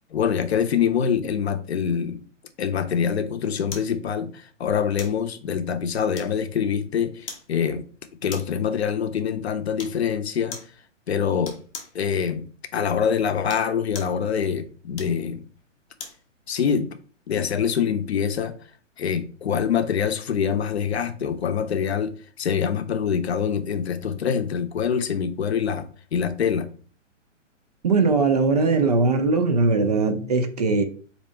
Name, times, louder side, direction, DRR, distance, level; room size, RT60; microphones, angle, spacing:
voice 1, 0.1-2.2 2.6-7.8 8.2-10.6 11.1-11.6 11.9-12.5 12.7-15.4 16.5-17.0 17.3-18.6 19.0-26.7, left 7 dB, 55° left, 0.6 m, -25 dB
sound 1, 3.7-4.0 5.0-5.2 6.1-6.6 7.3-7.5 8.3-8.6 9.8-10.0 10.5-10.8 11.4-12.0 13.3-14.2 14.9-16.2 16.7-16.8, left 4 dB, 15° left, 0.7 m, -39 dB
voice 2, 27.8-30.8, right 3 dB, 35° right, 0.4 m, -20 dB
4.0 x 2.8 x 4.3 m
figure-of-eight pair, 115°, 38 cm